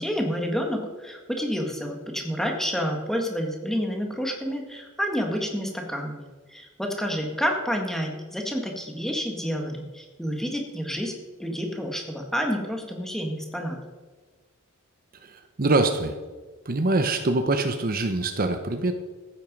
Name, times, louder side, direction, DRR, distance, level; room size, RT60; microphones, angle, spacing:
voice 1, 0.0-11.1 11.4-13.8, equal, ahead, 2 dB, 1.7 m, -29 dB
voice 2, 15.2-16.2 16.6-18.9, right 2 dB, 40° right, 7 dB, 0.9 m, -24 dB
14.5 x 9.2 x 5.3 m, 1.3 s
head